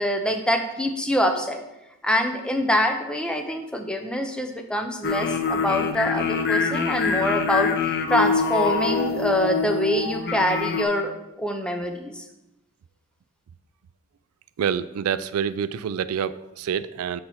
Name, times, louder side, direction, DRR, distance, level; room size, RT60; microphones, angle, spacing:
voice 1, 0.0-1.6 2.0-12.3, equal, 5° left, 4 dB, 0.6 m, -25 dB
sound 1, 5.0-10.8, left 5 dB, 50° left, 0.6 m, -25 dB
voice 2, 14.6-17.2, right 7 dB, 85° right, 16 dB, 0.3 m, -27 dB
6.6 x 4.3 x 5.7 m, 0.94 s
head